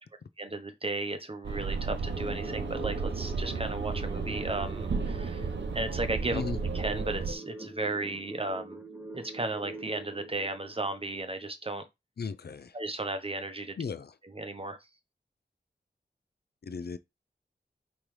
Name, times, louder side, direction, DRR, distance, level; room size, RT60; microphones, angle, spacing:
voice 1, 0.4-6.4 6.7-8.8 9.1-11.8 12.7-13.8 14.2-14.8, right 2 dB, 30° right, 0.9 m, -35 dB
sound 1, 1.4-7.3, right 5 dB, 85° right, 0.7 m, -33 dB
sound 2, 2.2-11.2, equal, 5° right, 1.0 m, -43 dB
voice 2, 12.2-12.7 13.8-14.1 16.6-17.0, left 5 dB, 60° left, 0.4 m, -35 dB
5.2 x 3.1 x 3.2 m
wide cardioid pair, 65°, 18 cm